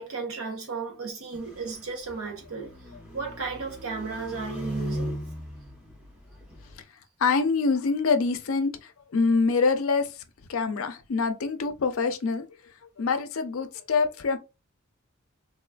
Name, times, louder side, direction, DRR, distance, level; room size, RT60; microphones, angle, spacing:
voice 1, 0.0-2.8 3.1-5.2, right 4 dB, 80° right, 0.9 m, -34 dB
sound 1, 1.3-6.8, equal, 5° right, 1.0 m, -38 dB
voice 2, 7.2-10.2 10.5-12.5 13.0-14.4, left 4 dB, 75° left, 0.5 m, -25 dB
3.7 x 2.4 x 2.3 m
head